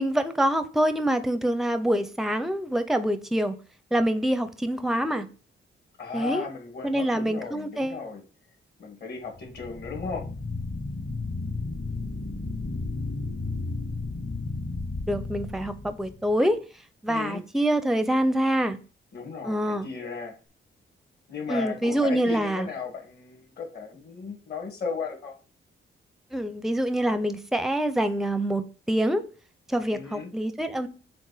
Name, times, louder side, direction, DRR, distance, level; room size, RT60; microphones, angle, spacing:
voice 1, 0.0-3.5 3.9-5.3 6.1-6.4 6.8-8.0 15.1-16.6 17.0-18.8 19.4-19.9 21.5-22.7 26.3-29.2 29.7-30.9, right 1 dB, ahead, 10 dB, 0.5 m, -25 dB
voice 2, 6.0-8.2 8.8-10.3 17.1-17.4 19.1-20.3 21.3-25.3 29.9-30.3, left 5 dB, 50° left, 3 dB, 1.9 m, -35 dB
sound 1, 9.4-16.4, left 3 dB, 30° left, 0.8 m, -33 dB
7.5 x 2.5 x 4.9 m, 0.36 s
wide cardioid pair, 145°, 21 cm